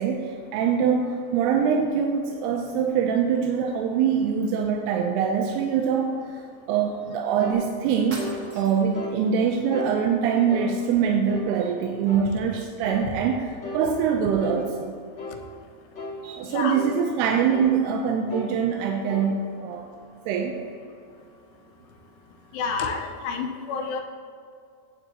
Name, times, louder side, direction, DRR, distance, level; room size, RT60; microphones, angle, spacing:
voice 1, 0.0-6.4 6.7-8.2 8.6-14.9 16.2-19.9 20.3-20.6, right 7 dB, 80° right, 2 dB, 2.6 m, -24 dB
sound 1, 7.4-7.6 8.2-8.4 8.9-9.2 9.7-9.9 10.5-10.7 11.3-11.5 12.1-12.3 12.8-13.1 13.6-13.9 14.4-14.6 15.2-15.4 15.9-16.2 16.7-16.9 17.5-17.7 18.3-18.5 19.1-19.3, left 2 dB, 40° left, 0.9 m, -35 dB
sound 2, 8.1-9.0, right 2 dB, 45° right, 1.8 m, -39 dB
voice 2, 16.4-16.8 22.5-24.0, left 5 dB, 85° left, 3 dB, 2.9 m, -29 dB
17.0 x 7.9 x 2.8 m, 2.4 s
omnidirectional pair, 4.9 m